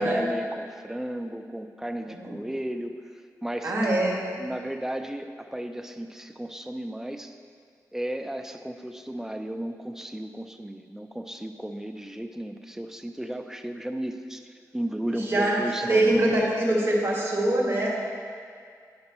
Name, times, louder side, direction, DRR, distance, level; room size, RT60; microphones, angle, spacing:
voice 1, 0.0-3.0 3.4-3.7 4.0-4.1 4.4-7.3 7.9-14.4 14.7-16.2, right 1 dB, 5° right, 6 dB, 0.5 m, -34 dB
voice 2, 3.6-4.2 15.1-15.6 15.9-17.9, right 1 dB, 35° right, -3 dB, 1.7 m, -23 dB
10.5 x 5.3 x 3.0 m, 2.1 s
cardioid pair, 75°, 7 cm